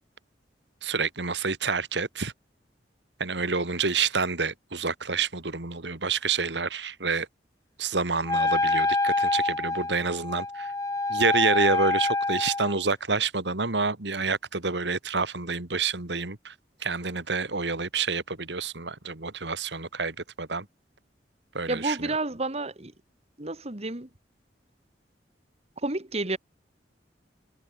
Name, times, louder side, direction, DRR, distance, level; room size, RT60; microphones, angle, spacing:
voice 1, 0.8-2.3 3.2-7.3 7.8-10.7 11.1-16.5 16.8-20.7 21.5-22.1, right 4 dB, 85° right, 2.3 m, -28 dB
Wind instrument woodwind instrument, 8.3-12.8, left 2 dB, 20° left, 4.7 m, -26 dB
voice 2, 21.7-22.9 23.4-24.1 25.8-26.4, right 2 dB, 35° right, 2.0 m, -30 dB
head